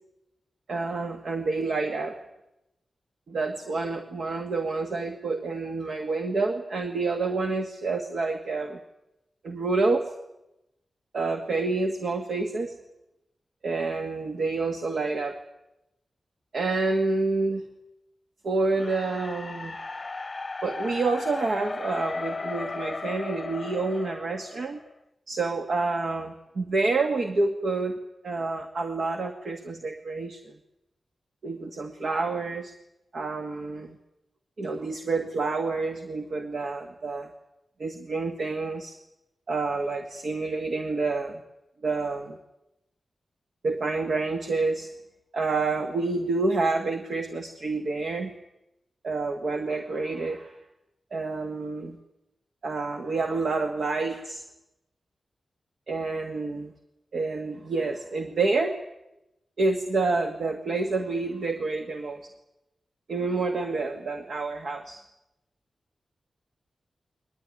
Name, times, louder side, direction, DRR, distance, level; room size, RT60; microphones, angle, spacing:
voice 1, 0.7-2.2 3.3-8.8 9.4-10.1 11.1-12.8 13.6-15.4 16.5-17.6 18.4-19.8 20.6-24.8 25.3-28.0 28.2-30.5 31.4-32.7 33.1-34.0 34.6-37.3 37.8-39.0 39.5-41.4 41.8-42.4 43.6-44.9 45.3-48.3 49.0-50.6 51.1-52.0 52.6-54.4 55.9-56.7 57.1-58.8 59.6-62.2 63.1-65.0, right 3 dB, 65° right, 5 dB, 1.8 m, -28 dB
sound 1, 18.8-24.9, left 3 dB, 30° left, 0.8 m, -35 dB
22.0 x 20.0 x 9.7 m, 0.90 s
wide cardioid pair, 110°, 0 cm